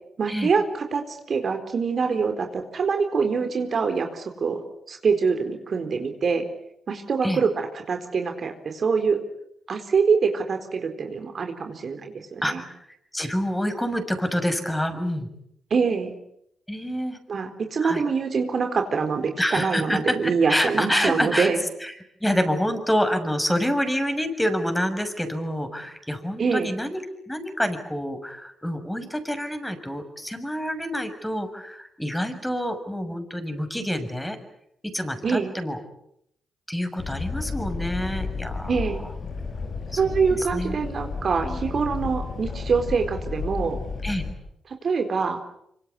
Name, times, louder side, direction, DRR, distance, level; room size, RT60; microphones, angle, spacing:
voice 1, 0.2-4.6 4.9-6.5 6.9-9.2 9.7-12.6 15.7-16.1 17.3-21.6 26.4-26.7 35.2-35.5 38.7-39.0 40.0-43.8 44.7-45.4, right 5 dB, 55° right, 6 dB, 4.1 m, -25 dB
voice 2, 12.4-12.8 13.1-15.3 16.7-17.2 17.8-18.0 19.4-21.5 21.8-21.9 22.2-34.4 34.8-35.8 36.7-38.7 39.9-40.0 40.3-40.8 41.4-41.6 44.0-44.2, equal, 10° left, 7 dB, 6.5 m, -27 dB
sound 1, 37.0-44.3, left 4 dB, 60° left, 7.8 m, -32 dB
25.5 x 25.5 x 8.4 m, 0.74 s
supercardioid pair, 50°, 0 cm